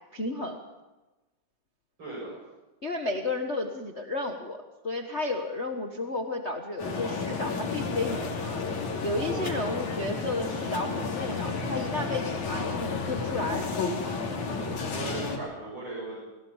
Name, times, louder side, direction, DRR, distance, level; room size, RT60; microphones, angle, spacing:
voice 1, 0.1-0.6 2.8-8.7 9.0-13.7, left 2 dB, 40° left, 3 dB, 0.9 m, -32 dB
voice 2, 2.0-2.3 9.2-9.8 14.3-16.3, right 2 dB, 35° right, -7 dB, 8.3 m, -38 dB
sound 1, 6.8-15.4, left 4 dB, 70° left, 4.2 m, -32 dB
22.0 x 18.0 x 7.2 m, 1.1 s
omnidirectional pair, 3.6 m